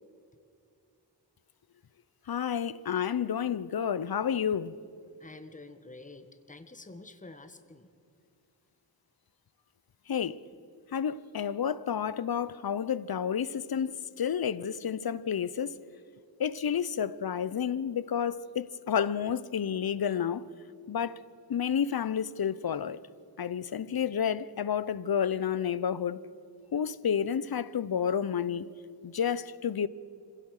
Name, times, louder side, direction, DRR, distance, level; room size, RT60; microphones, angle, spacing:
voice 1, 2.3-4.8 10.1-10.4 10.9-15.8 16.4-20.4 20.9-21.2 21.5-23.0 23.4-26.2 26.7-28.7 29.0-29.9, left 8 dB, 55° left, 0.8 m, -30 dB
voice 2, 5.2-7.9, left 2 dB, 15° left, 1.4 m, -48 dB
26.0 x 16.5 x 6.6 m
wide cardioid pair, 70°, 43 cm